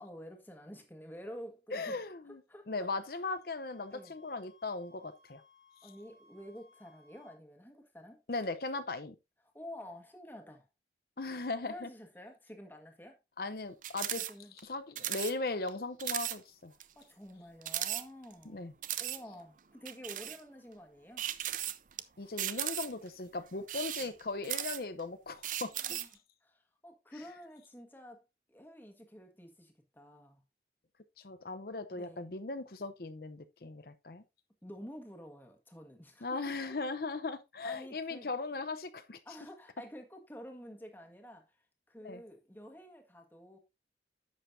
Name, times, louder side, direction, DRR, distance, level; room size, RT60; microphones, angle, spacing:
voice 1, 0.0-2.9 3.9-4.1 5.8-8.2 9.5-10.7 11.6-13.2 14.2-14.5 16.9-18.7 19.0-21.2 24.0-24.1 25.7-26.1 26.4-28.2 28.5-30.4 31.9-32.3 34.6-36.4 36.7-36.8 37.6-38.3 39.2-41.6 41.9-43.6, equal, 10° left, 1.5 m, -50 dB
voice 2, 1.7-2.4 2.7-5.4 8.3-9.2 11.2-11.9 13.4-14.2 14.6-16.7 18.5-18.7 22.2-26.0 31.2-34.2 36.2-39.2 42.0-42.2, left 3 dB, 55° left, 0.7 m, -38 dB
sound 1, 2.8-7.4, left 2 dB, 80° left, 3.1 m, -64 dB
sound 2, 13.8-14.3 14.6-14.7 15.0-15.3 15.7-15.8 16.0-16.4 16.8-16.9 17.6-18.4 18.8-19.2 19.9-20.4 21.2-22.0 22.4-23.1 23.6-25.0 25.4-26.1, right 12 dB, 45° right, 0.5 m, -36 dB
10.5 x 7.3 x 2.6 m
head